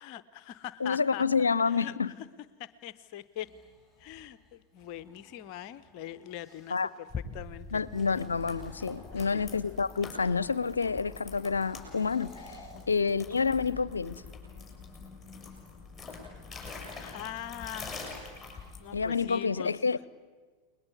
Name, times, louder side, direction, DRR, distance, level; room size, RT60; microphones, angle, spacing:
voice 1, 0.0-2.3 2.6-3.5 4.0-7.1 7.3-7.8 9.1-9.4 12.7-13.1 17.0-18.0 18.8-19.7, left 12 dB, 45° left, 0.8 m, -42 dB
voice 2, 0.8-2.1 6.7-6.9 7.7-12.6 12.9-14.2 18.9-20.0, left 5 dB, 75° left, 0.7 m, -28 dB
sound 1, 3.2-7.0 7.7-9.8 11.3-13.6, equal, 15° right, 4.8 m, -56 dB
sound 2, 7.1-19.1, left 4 dB, 5° left, 6.7 m, -44 dB
29.5 x 21.5 x 8.1 m
figure-of-eight pair, 90°, 0 cm